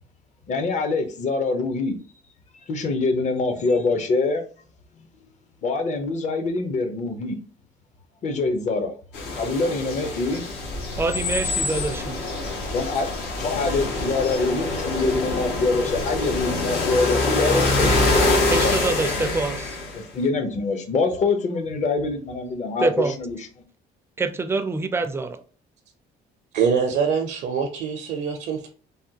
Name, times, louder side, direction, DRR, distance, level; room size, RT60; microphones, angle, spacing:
voice 1, 0.5-2.0 2.7-4.4 5.6-7.4 8.2-8.9 9.4-10.4 12.7-13.1 13.4-18.7 19.9-23.5, left 3 dB, 45° left, 0.7 m, -25 dB
sound 1, 9.1-20.0, left 2 dB, 80° left, 1.0 m, -25 dB
voice 2, 11.0-12.2 18.5-19.8 22.8-23.1 24.2-25.4, right 3 dB, 15° right, 0.4 m, -25 dB
voice 3, 26.5-28.7, right 6 dB, 70° right, 0.6 m, -24 dB
3.4 x 2.2 x 2.7 m
cardioid pair, 110°, 17 cm